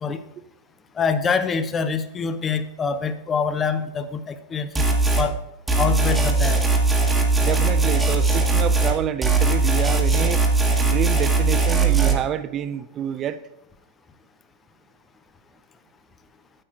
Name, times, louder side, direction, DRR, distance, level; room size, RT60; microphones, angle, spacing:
voice 1, 1.0-4.8 5.2-5.3 5.8-6.6, left 5 dB, 20° left, 11 dB, 0.5 m, -25 dB
sound 1, 4.8-5.3 5.7-9.0 9.2-12.1, right 3 dB, 10° right, 1.1 m, -19 dB
voice 2, 7.4-10.4 10.8-13.4, right 10 dB, 30° right, 12 dB, 0.3 m, -28 dB
9.8 x 8.4 x 2.4 m, 0.86 s
figure-of-eight pair, 90°, 0 cm